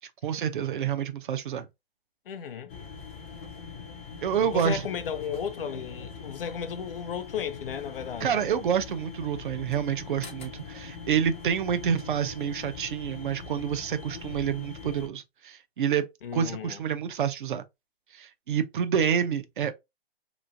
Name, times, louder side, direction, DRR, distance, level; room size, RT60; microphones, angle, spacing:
voice 1, 0.2-1.7 4.2-4.8 8.2-16.1 16.3-17.6 18.1-19.7, right 8 dB, 55° right, 0.6 m, -28 dB
voice 2, 2.3-2.8 4.5-8.4 16.2-16.8, left 8 dB, 60° left, 0.6 m, -34 dB
sound 1, 2.7-15.1, left 5 dB, 15° left, 0.3 m, -42 dB
3.0 x 2.4 x 2.5 m
hypercardioid pair, 140°, 31 cm